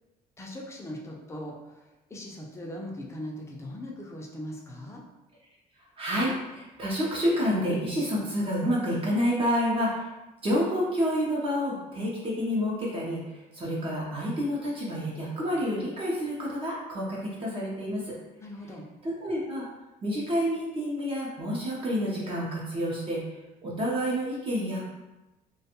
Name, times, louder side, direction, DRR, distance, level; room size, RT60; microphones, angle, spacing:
voice 1, 0.4-1.8 2.1-5.0 18.4-18.9, left 1 dB, 15° left, -1 dB, 0.5 m, -39 dB
voice 2, 6.0-10.1 10.4-18.1 19.0-19.6 20.0-23.2 23.6-24.9, equal, 35° right, -5 dB, 0.7 m, -29 dB
2.4 x 2.3 x 2.8 m, 1.0 s
cardioid pair, 110°, 17 cm